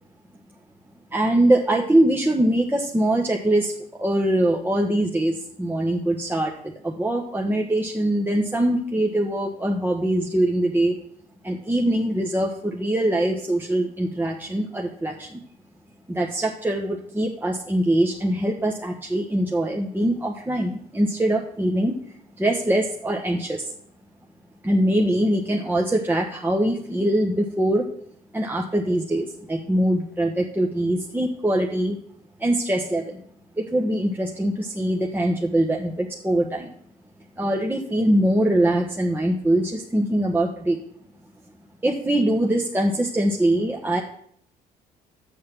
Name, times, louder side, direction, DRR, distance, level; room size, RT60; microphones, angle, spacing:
voice 1, 1.1-3.7 4.0-11.0 11.4-15.4 16.1-21.9 22.4-23.7 24.6-27.9 28.3-32.0 32.4-33.2 33.6-36.7 37.4-40.8 41.8-44.0, right 1 dB, 10° right, 0 dB, 1.2 m, -23 dB
6.5 x 6.5 x 7.4 m, 0.65 s
supercardioid pair, 70°, 18 cm